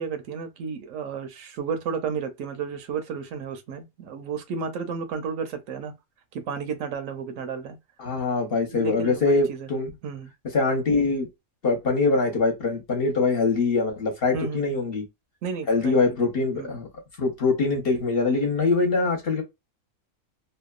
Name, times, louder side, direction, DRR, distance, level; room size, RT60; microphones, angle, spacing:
voice 1, 0.0-5.9 6.3-7.8 8.7-9.7 10.0-10.3 14.3-14.8 15.4-16.2 16.5-16.7, right 6 dB, 75° right, 1.0 m, -32 dB
voice 2, 8.0-9.9 10.5-11.3 11.6-15.0 15.7-16.9 17.2-19.4, left 3 dB, 50° left, 0.9 m, -23 dB
2.8 x 2.1 x 2.3 m
omnidirectional pair, 1.4 m